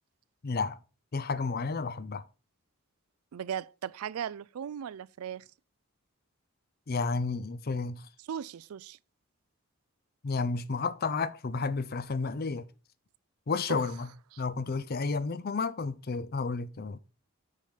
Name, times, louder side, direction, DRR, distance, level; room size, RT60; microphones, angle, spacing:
voice 1, 0.4-0.8 1.1-2.2 6.9-8.0 10.2-12.6 13.5-14.1 14.4-17.0, left 4 dB, 45° left, 0.5 m, -31 dB
voice 2, 3.3-5.4 8.2-9.0 13.7-14.4, right 8 dB, 80° right, 0.4 m, -38 dB
6.4 x 5.6 x 5.1 m
head